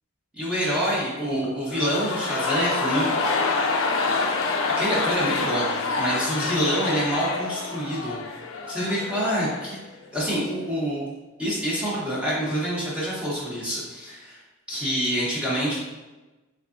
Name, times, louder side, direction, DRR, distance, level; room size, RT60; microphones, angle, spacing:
voice 1, 0.3-3.1 4.8-8.1 8.7-9.8 10.1-11.0 11.4-14.4 14.7-15.8, equal, 5° right, -8 dB, 0.8 m, -26 dB
sound 1, 1.7-9.8 10.0-10.1, left 3 dB, 65° left, 0.4 m, -27 dB
3.6 x 3.2 x 2.4 m, 1.1 s
head